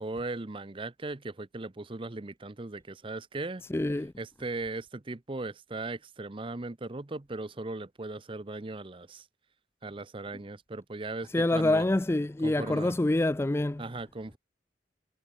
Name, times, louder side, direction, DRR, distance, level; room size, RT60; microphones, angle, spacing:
voice 1, 0.0-3.6 4.2-9.2 9.8-11.9 12.4-12.9 13.8-14.4, right 2 dB, 30° right, 0.7 m, -38 dB
voice 2, 3.7-4.1 11.3-13.8, left 1 dB, 15° left, 0.4 m, -26 dB
head